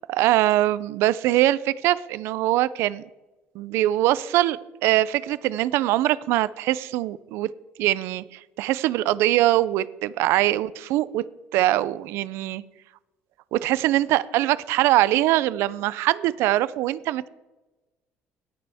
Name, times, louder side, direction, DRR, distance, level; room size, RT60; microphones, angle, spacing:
voice 1, 0.1-3.0 3.6-7.5 7.8-11.2 11.5-12.6 13.5-17.3, right 15 dB, 70° right, 18 dB, 0.4 m, -22 dB
17.0 x 6.8 x 3.5 m, 1.1 s
cardioid pair, 165°, 5 cm